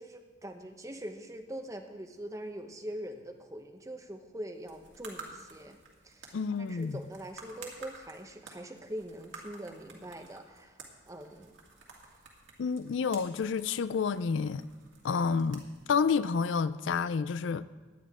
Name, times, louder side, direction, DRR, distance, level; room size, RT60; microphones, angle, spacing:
voice 1, 0.0-5.8 6.0-6.3 6.6-10.8 11.1-11.5, right 1 dB, 15° right, 0.9 m, -43 dB
sound 1, 4.5-17.0, right 4 dB, 70° right, 2.3 m, -52 dB
voice 2, 6.3-7.0 12.6-14.6 15.0-17.6, left 5 dB, 70° left, 0.4 m, -29 dB
17.5 x 11.0 x 3.7 m
head